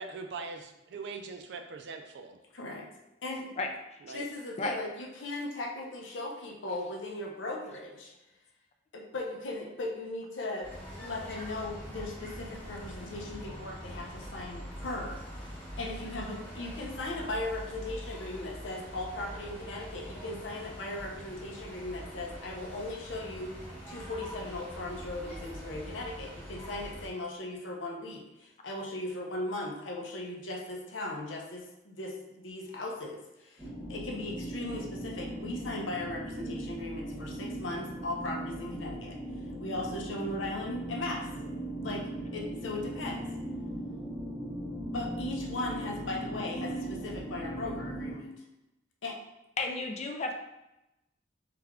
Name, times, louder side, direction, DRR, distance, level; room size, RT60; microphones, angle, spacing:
voice 1, 0.0-2.4 4.0-4.2, right 4 dB, 65° right, 5 dB, 0.4 m, -41 dB
voice 2, 2.5-2.8 3.2-3.5 4.1-8.1 8.9-10.7 11.0-15.5 15.8-23.6 23.9-39.2 39.6-41.3 41.8-43.3 44.9-48.4 49.0-49.2, left 2 dB, 90° left, 0 dB, 0.7 m, -38 dB
sound 1, 10.6-27.1, equal, 10° left, 1.1 m, -44 dB
sound 2, 33.6-48.1, right 1 dB, 20° right, 0.9 m, -39 dB
voice 3, 49.6-50.3, left 3 dB, 35° left, 4 dB, 0.4 m, -32 dB
3.4 x 3.3 x 3.6 m, 0.92 s
head